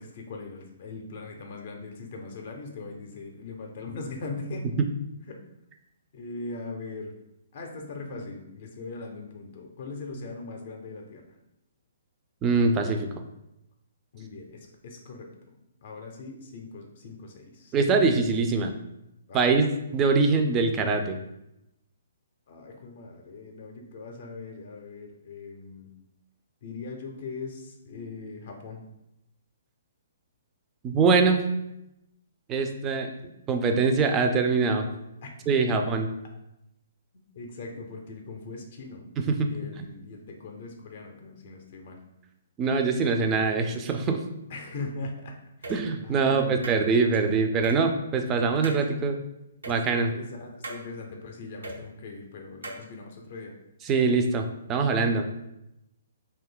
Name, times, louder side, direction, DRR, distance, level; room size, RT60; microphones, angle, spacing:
voice 1, 0.0-4.7 5.3-5.4 6.1-7.1 7.5-11.2 14.1-15.3 15.8-17.7 19.3-19.5 22.5-25.9 26.6-28.8 35.2-35.3 37.1-39.1 39.4-42.0 44.5-45.7 46.0-46.7 49.7-53.6, left 3 dB, 55° left, 2 dB, 0.5 m, -40 dB
voice 2, 12.4-13.1 17.7-18.7 19.3-21.2 30.8-31.4 32.5-33.1 33.5-34.9 35.5-36.1 39.3-39.5 42.6-44.2 45.7-49.2 49.7-50.1 53.9-55.4, right 4 dB, 20° right, 5 dB, 0.3 m, -23 dB
sound 1, 45.6-45.8 46.6-47.2 47.6-47.8 48.6-48.9 49.6-49.8 50.6-50.8 51.6-51.8 52.6-52.9, right 1 dB, 85° right, 0.5 m, -37 dB
2.6 x 2.2 x 3.7 m, 0.87 s
hypercardioid pair, 140°, 0 cm